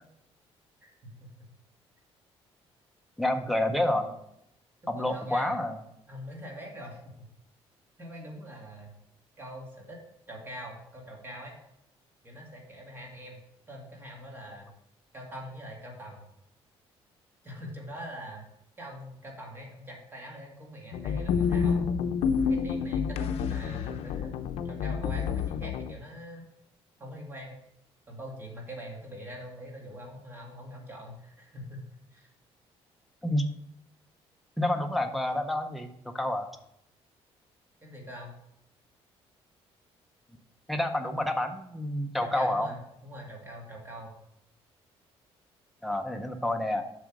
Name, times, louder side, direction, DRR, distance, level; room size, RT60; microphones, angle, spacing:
voice 1, 0.8-1.5 4.9-5.5 6.1-7.3 8.0-8.9 9.4-10.0 10.3-11.5 12.2-13.4 13.7-14.7 15.1-16.2 17.4-18.5 18.8-21.8 22.5-26.5 27.0-27.5 28.1-32.3 37.8-38.4 42.2-44.1, equal, 20° right, -1 dB, 2.2 m, -43 dB
voice 2, 3.2-4.2 4.9-5.8 33.2-33.5 34.6-36.5 40.7-42.7 45.8-46.8, left 1 dB, ahead, 4 dB, 0.6 m, -28 dB
sound 1, 20.9-26.0, left 6 dB, 75° left, 0.6 m, -29 dB
7.5 x 6.2 x 4.7 m, 0.78 s
cardioid pair, 155°, 10 cm